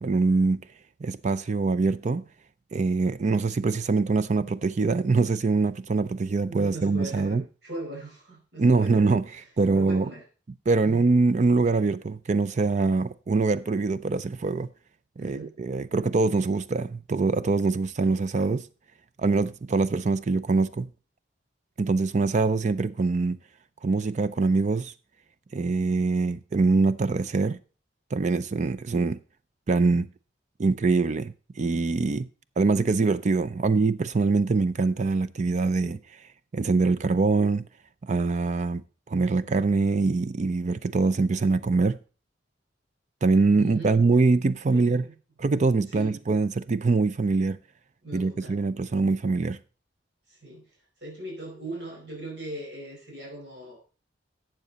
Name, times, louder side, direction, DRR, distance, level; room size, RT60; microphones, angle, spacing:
voice 1, 0.0-0.6 1.0-2.2 2.7-7.4 8.6-9.3 9.6-10.1 10.7-14.7 15.2-18.7 19.2-20.9 21.8-23.4 23.8-24.9 25.5-27.6 28.1-29.2 29.7-30.1 30.6-32.3 32.6-36.0 36.5-37.6 38.0-38.8 39.1-42.0 43.2-45.0 45.4-47.6 48.1-49.6, right 3 dB, 40° right, 0.4 m, -24 dB
voice 2, 6.5-9.0 9.3-9.5 9.7-10.2 10.8-11.0 15.2-15.5 43.6-43.9 44.7-45.1 45.9-46.2 48.0-48.5 50.3-50.7 51.0-53.8, right 1 dB, 65° right, 4.9 m, -39 dB
12.0 x 7.8 x 4.1 m
head